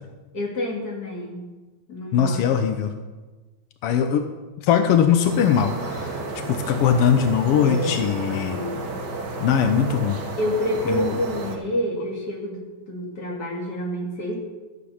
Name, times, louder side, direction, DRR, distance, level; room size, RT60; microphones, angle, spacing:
voice 1, 0.3-1.5 1.9-2.4 7.6-8.0 8.3-8.8 10.4-14.3, left 1 dB, 30° left, -1 dB, 2.8 m, -28 dB
voice 2, 2.1-2.9 3.8-4.3 4.6-6.2 6.5-8.6 9.4-10.2 10.9-11.1, left 8 dB, 80° left, 7 dB, 1.3 m, -20 dB
sound 1, 5.2-11.6, right 2 dB, 45° right, 1.6 m, -32 dB
12.5 x 8.6 x 7.1 m, 1.2 s
omnidirectional pair, 3.5 m